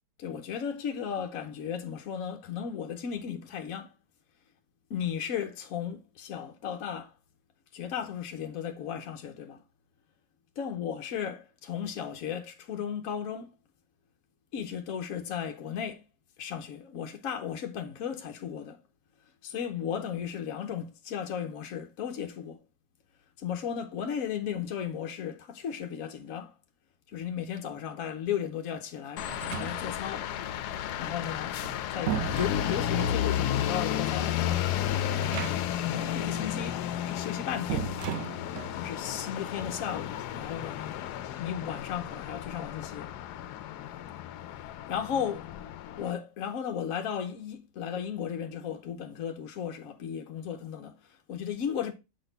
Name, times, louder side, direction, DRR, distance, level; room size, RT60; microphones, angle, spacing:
voice 1, 0.2-3.9 4.9-7.1 7.7-9.6 10.6-13.6 14.5-16.0 16.4-18.8 19.4-22.6 23.4-26.5 27.1-30.3 31.0-31.6 31.9-34.7 35.1-36.8 37.1-37.9 38.7-41.0 41.4-43.1 44.5-45.5 46.0-51.9, left 8 dB, 65° left, 1.1 m, -35 dB
sound 1, 29.2-46.1, left 10 dB, 90° left, 1.2 m, -33 dB
sound 2, 29.3-30.1 31.4-33.2 35.1-35.9 36.2-36.3 37.7-38.8, right 9 dB, 70° right, 0.9 m, -36 dB
7.2 x 4.0 x 3.9 m
omnidirectional pair, 1.7 m